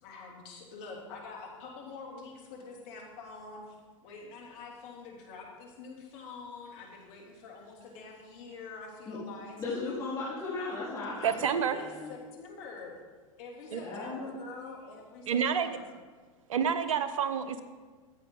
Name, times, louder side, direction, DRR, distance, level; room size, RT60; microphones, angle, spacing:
voice 1, 0.0-3.8 4.0-9.6 11.1-13.0 13.4-15.9, left 4 dB, 50° left, -1 dB, 2.9 m, -46 dB
voice 2, 9.6-12.1 13.8-14.5, left 3 dB, 20° left, -11 dB, 3.9 m, -37 dB
voice 3, 11.2-11.8 13.7-13.8 15.3-15.7 16.5-17.6, right 7 dB, 70° right, 10 dB, 0.9 m, -28 dB
13.0 x 8.6 x 3.8 m, 1.4 s
hypercardioid pair, 100°, 18 cm